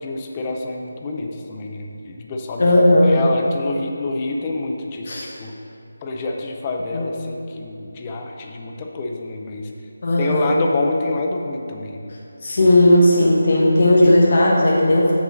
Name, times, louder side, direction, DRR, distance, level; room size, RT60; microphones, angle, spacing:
voice 1, 0.0-5.5 6.0-9.7 10.2-12.2 12.6-12.8 14.0-14.2, left 2 dB, 15° left, 1 dB, 0.5 m, -27 dB
voice 2, 2.6-3.2 5.1-5.3 6.9-7.1 10.0-10.5 12.4-15.1, left 1 dB, 40° left, -4 dB, 1.0 m, -15 dB
7.9 x 6.0 x 6.2 m, 2.6 s
figure-of-eight pair, 180°, 0 cm